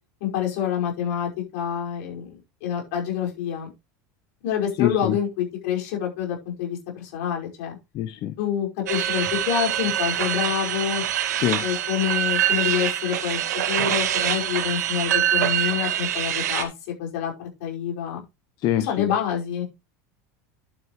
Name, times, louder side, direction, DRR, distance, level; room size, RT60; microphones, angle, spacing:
voice 1, 0.2-3.7 4.4-7.8 8.4-11.0 11.6-13.4 13.7-16.7 17.0-18.2 18.7-19.6, left 9 dB, 70° left, 5.6 m, -27 dB
voice 2, 4.8-5.1 7.9-8.3 11.4-11.6 18.6-19.1, left 12 dB, 50° left, 0.9 m, -24 dB
sound 1, 8.9-16.6, right 11 dB, 85° right, 2.2 m, -25 dB
11.0 x 9.0 x 3.2 m
supercardioid pair, 105°, 9 cm